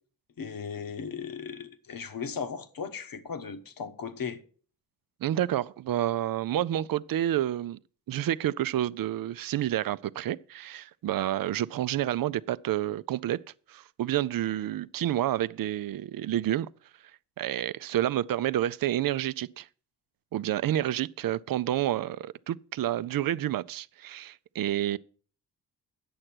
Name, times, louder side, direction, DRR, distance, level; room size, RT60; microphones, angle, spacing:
voice 1, 0.4-4.4, left 6 dB, 55° left, 1.2 m, -37 dB
voice 2, 5.2-7.8 8.1-13.4 13.7-16.7 17.4-19.7 20.3-25.0, right 12 dB, 55° right, 0.5 m, -29 dB
8.8 x 6.5 x 6.0 m
supercardioid pair, 40°, 40 cm